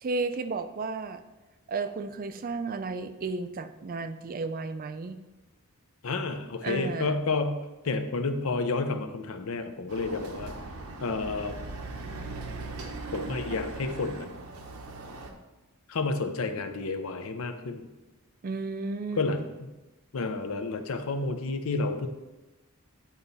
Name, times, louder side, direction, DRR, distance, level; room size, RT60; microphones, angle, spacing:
voice 1, 0.0-1.2 1.7-5.2 6.6-7.2 18.4-19.5, right 3 dB, 40° right, 10 dB, 0.4 m, -33 dB
voice 2, 6.0-10.5 11.0-11.6 13.1-14.3 15.9-17.9 19.2-19.4 20.1-22.1, left 3 dB, 70° left, 7 dB, 0.6 m, -30 dB
Chatter / Car passing by / Motorcycle, 9.9-15.3, right 3 dB, 75° right, 0.8 m, -39 dB
8.8 x 4.0 x 4.1 m, 1.1 s
head